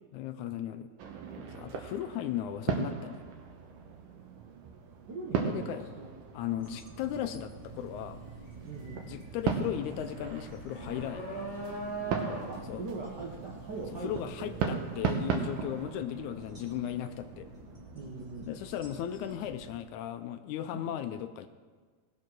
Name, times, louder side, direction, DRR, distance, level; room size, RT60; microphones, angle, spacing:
voice 1, 0.1-0.9 1.5-3.2 5.4-5.9 6.3-8.2 9.1-11.5 12.6-12.9 13.9-17.5 18.5-21.5, left 11 dB, 80° left, 9 dB, 1.9 m, -36 dB
sound 1, 1.0-19.4, right 7 dB, 85° right, 2.6 m, -38 dB
voice 2, 5.1-6.1 8.6-9.1 12.0-14.8 17.9-18.5 20.7-20.9, right 3 dB, 65° right, -1 dB, 1.0 m, -41 dB
sound 2, 6.6-19.8, equal, 15° right, 1.4 m, -51 dB
sound 3, 7.7-7.9 8.3-15.3, right 2 dB, 40° left, 3.8 m, -41 dB
18.0 x 7.4 x 6.0 m, 1.5 s
omnidirectional pair, 3.7 m